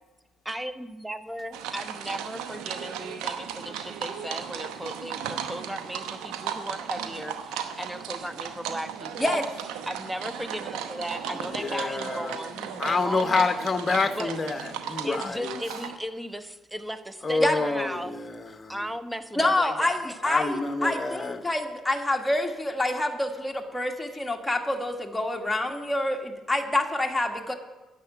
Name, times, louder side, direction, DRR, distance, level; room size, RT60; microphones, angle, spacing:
voice 1, 0.4-9.4 9.9-13.7 14.2-14.4 15.0-18.2 18.5-20.2 20.8-20.9, equal, 10° right, 10 dB, 1.0 m, -36 dB
sound 1, 1.5-16.0, right 8 dB, 75° right, 0.9 m, -36 dB
voice 2, 11.5-12.3 12.8-15.6 17.2-18.8 20.2-21.4, left 4 dB, 30° left, 8 dB, 1.0 m, -28 dB
voice 3, 19.4-27.5, left 1 dB, 10° left, 2 dB, 1.6 m, -27 dB
10.0 x 7.2 x 9.0 m, 1.2 s
hypercardioid pair, 50°, 0 cm